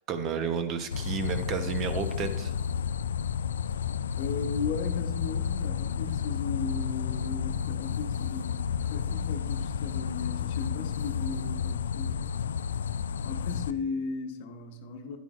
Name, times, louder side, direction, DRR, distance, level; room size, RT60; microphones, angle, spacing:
voice 1, 0.1-2.5, right 6 dB, 40° right, 8 dB, 0.9 m, -31 dB
sound 1, 0.9-13.7, left 7 dB, 85° left, 0.3 m, -31 dB
voice 2, 4.2-12.1 13.2-15.2, left 5 dB, 60° left, 5 dB, 1.1 m, -36 dB
10.5 x 8.7 x 2.5 m, 1.0 s
hypercardioid pair, 115°, 0 cm